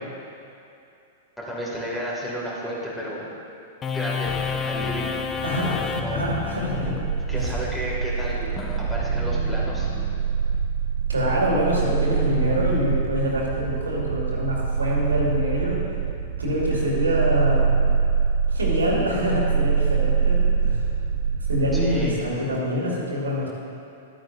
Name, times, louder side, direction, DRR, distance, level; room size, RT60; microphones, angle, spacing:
voice 1, 1.4-3.3 3.9-4.4 4.6-6.3 7.3-8.6 8.9-9.9 21.7-22.2, equal, 5° left, -6 dB, 2.4 m, -32 dB
sound 1, 3.8-10.6, left 5 dB, 25° left, 0.6 m, -31 dB
voice 2, 5.4-7.0 7.3-7.4 11.1-16.0 16.4-17.7 18.5-20.9 21.4-23.5, left 1 dB, 80° right, -4 dB, 2.2 m, -25 dB
sound 2, 6.7-22.1, right 6 dB, 60° right, 0.5 m, -24 dB
12.5 x 8.9 x 2.6 m, 2.6 s
figure-of-eight pair, 100°, 0 cm